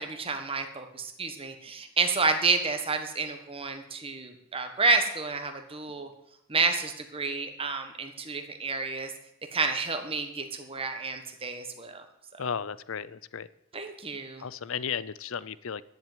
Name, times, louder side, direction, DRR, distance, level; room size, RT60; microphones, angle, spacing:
voice 1, 0.0-6.1 6.5-9.1 9.5-12.0 13.7-14.4, right 4 dB, 25° right, 6 dB, 1.5 m, -30 dB
voice 2, 12.4-13.5 14.4-15.8, left 7 dB, 65° left, 18 dB, 0.5 m, -34 dB
10.5 x 7.8 x 9.3 m, 0.83 s
head